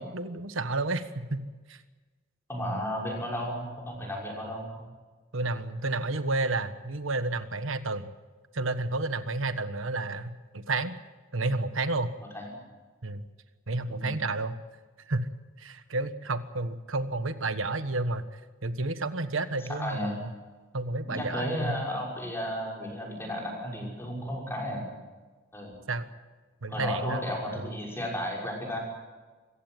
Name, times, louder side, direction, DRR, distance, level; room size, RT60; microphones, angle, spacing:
voice 1, 0.0-1.8 5.3-8.1 8.5-11.0 11.3-12.1 13.0-13.3 13.7-14.5 15.1-15.3 15.6-18.3 18.6-20.3 20.7-21.8 25.9-26.1 26.6-27.7, right 2 dB, 80° right, 11 dB, 1.5 m, -31 dB
voice 2, 2.5-4.8 12.3-12.5 13.9-14.2 19.7-20.2 21.1-24.9 25.5-25.7 26.7-28.8, equal, 10° left, -2 dB, 6.1 m, -33 dB
25.5 x 15.5 x 9.4 m, 1.3 s
head